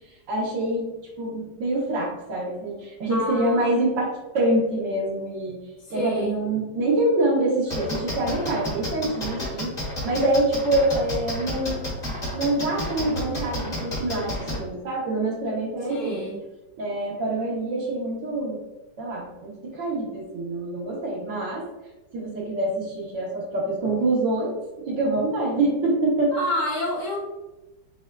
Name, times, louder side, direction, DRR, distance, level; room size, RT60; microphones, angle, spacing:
voice 1, 0.3-0.9 1.2-5.6 5.9-9.8 10.0-11.8 12.3-16.2 16.8-18.6 19.0-21.6 22.1-26.3, right 2 dB, 80° right, -3 dB, 1.8 m, -25 dB
voice 2, 3.1-3.7 5.9-6.4 15.9-16.4 26.3-27.2, equal, 70° left, -6 dB, 2.1 m, -28 dB
sound 1, 7.7-14.6, left 1 dB, 25° left, 1.5 m, -30 dB
6.8 x 2.4 x 2.3 m, 1.0 s
omnidirectional pair, 1.9 m